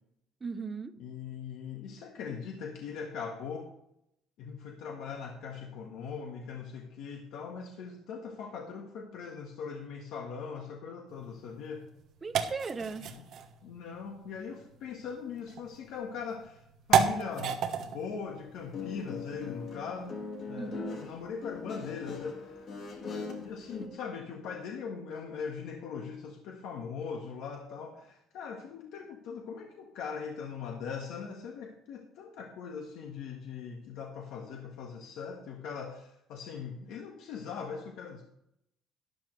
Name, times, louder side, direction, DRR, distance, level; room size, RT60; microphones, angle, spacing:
voice 1, 0.4-0.9 12.2-13.1 20.6-21.0 23.8-23.9, right 4 dB, 15° right, 8 dB, 0.7 m, -38 dB
voice 2, 1.0-3.7 4.4-11.9 13.1-13.2 13.6-16.6 16.9-20.2 20.5-22.7 23.0-38.2, left 6 dB, 65° left, 1 dB, 1.6 m, -40 dB
sound 1, 11.1-19.7, right 8 dB, 45° right, 1.2 m, -34 dB
Guitar, 18.6-23.9, left 4 dB, 40° left, 2.1 m, -41 dB
13.0 x 11.5 x 3.3 m, 0.78 s
cardioid pair, 175°, 0 cm